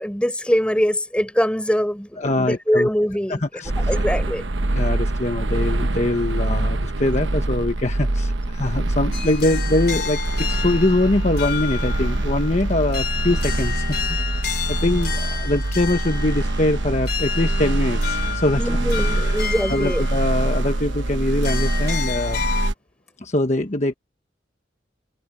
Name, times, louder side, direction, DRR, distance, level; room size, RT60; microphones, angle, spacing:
voice 1, 0.0-3.4 3.8-4.4 18.6-20.0, equal, 5° left, 4.6 m, -23 dB
voice 2, 2.2-2.9 3.3-3.9 4.6-18.6 19.0-19.4 19.7-22.4 23.2-23.9, left 1 dB, 40° left, 1.2 m, -23 dB
sound 1, 3.6-22.7, right 2 dB, 90° right, 1.1 m, -24 dB
sound 2, 9.1-22.7, left 8 dB, 60° left, 3.1 m, -31 dB
head